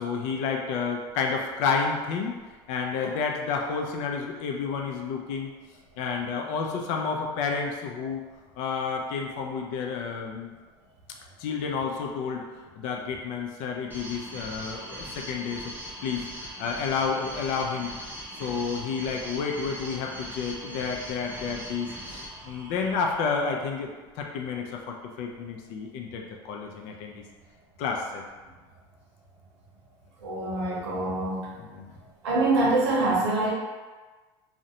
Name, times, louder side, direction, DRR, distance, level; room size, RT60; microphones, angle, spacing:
voice 1, 0.0-2.4 2.7-5.5 6.0-8.2 8.6-10.5 11.4-12.4 12.7-15.7 16.0-17.9 18.3-23.9 24.2-27.2 27.8-28.2 31.6-31.9, left 5 dB, 65° left, 1 dB, 0.5 m, -30 dB
sound 1, 13.9-23.2, equal, 15° right, 0.6 m, -40 dB
voice 2, 30.2-31.5 32.2-33.5, right 2 dB, 90° right, -5 dB, 0.7 m, -25 dB
2.4 x 2.1 x 2.8 m, 1.3 s
supercardioid pair, 95°, 14 cm